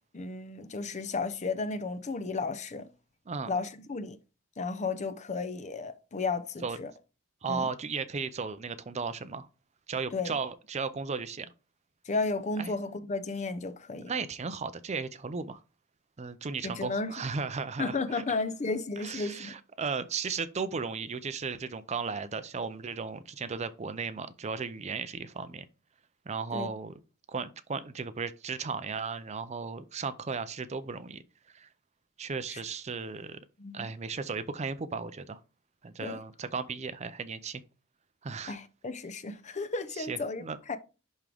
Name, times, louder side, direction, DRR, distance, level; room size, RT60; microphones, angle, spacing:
voice 1, 0.1-2.9 3.5-4.2 4.6-6.9 7.5-7.7 10.1-10.3 12.1-14.1 16.6-17.1 17.8-19.5 26.5-26.7 32.5-32.6 33.6-33.9 36.0-36.2 38.5-40.8, left 3 dB, 35° left, 0.6 m, -33 dB
voice 2, 3.3-3.6 6.6-6.8 7.4-9.5 9.9-11.5 12.6-12.7 14.1-15.6 16.2-18.2 19.0-25.7 26.3-26.9 27.3-31.2 31.5-31.7 32.2-33.4 33.7-35.4 35.8-37.6 38.2-38.6 40.0-40.6, right 5 dB, 30° right, 0.5 m, -35 dB
11.0 x 3.7 x 3.4 m
head